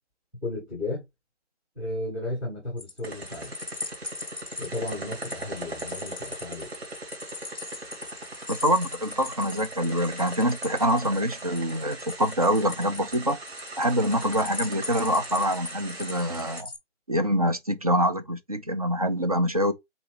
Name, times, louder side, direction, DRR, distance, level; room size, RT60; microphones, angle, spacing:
voice 1, 0.4-1.0 1.8-3.5 4.6-6.7, left 2 dB, 5° right, 0.9 m, -34 dB
sound 1, 2.8-16.8, left 3 dB, 20° left, 0.5 m, -40 dB
sound 2, 3.0-16.6, right 2 dB, 60° right, 2.0 m, -40 dB
voice 2, 8.5-13.4 13.8-16.7 17.1-19.7, equal, 35° right, 0.4 m, -25 dB
3.9 x 2.8 x 4.9 m
figure-of-eight pair, 150°, 36 cm